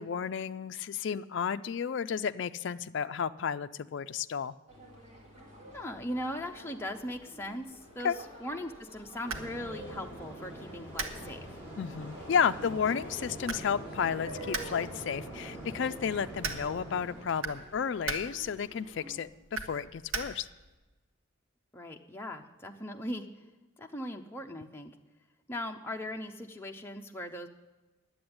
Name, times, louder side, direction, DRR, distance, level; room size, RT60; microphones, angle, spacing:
voice 1, 0.0-4.5 8.0-8.2 11.8-20.5, left 7 dB, 55° left, 11 dB, 0.3 m, -32 dB
sound 1, 4.7-19.1, right 1 dB, 30° right, 3.5 m, -50 dB
voice 2, 5.7-11.6 21.7-23.3 23.8-24.9 25.5-27.5, left 1 dB, 10° left, 2 dB, 0.6 m, -39 dB
sound 2, 8.7-20.7, right 4 dB, 75° right, 1.2 m, -42 dB
sound 3, 9.2-17.2, right 1 dB, 10° right, 3.2 m, -44 dB
10.0 x 7.9 x 9.5 m, 1.2 s
head